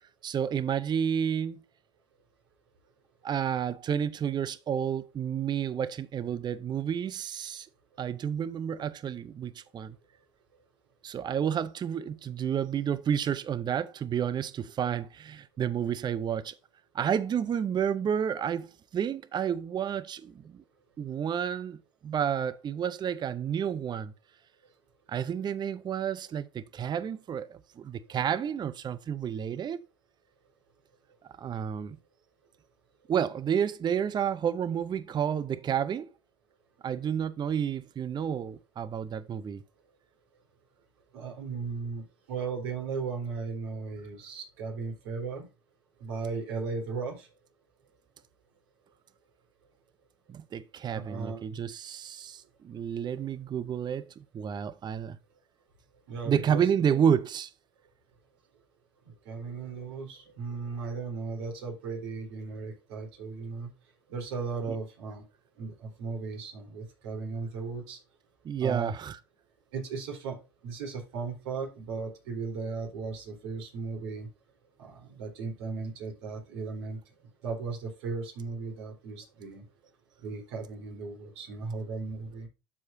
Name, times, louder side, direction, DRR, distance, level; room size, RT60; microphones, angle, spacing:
voice 1, 0.2-1.6 3.2-7.7 8.0-10.0 11.0-16.6 16.9-20.6 21.0-24.1 25.1-29.8 31.4-32.0 33.1-36.1 36.8-39.6 50.3-55.2 56.3-57.5 68.4-69.2, right 8 dB, 30° right, 0.6 m, -30 dB
voice 2, 41.1-45.4 46.0-47.3 50.9-51.6 53.1-53.2 56.1-57.0 59.3-63.7 64.1-65.2 65.6-68.0 68.6-68.9 69.7-70.4 70.6-74.3 74.8-77.0 77.4-79.6 80.2-82.5, right 4 dB, 75° right, 3.8 m, -36 dB
12.0 x 4.8 x 2.6 m
hypercardioid pair, 85°, 14 cm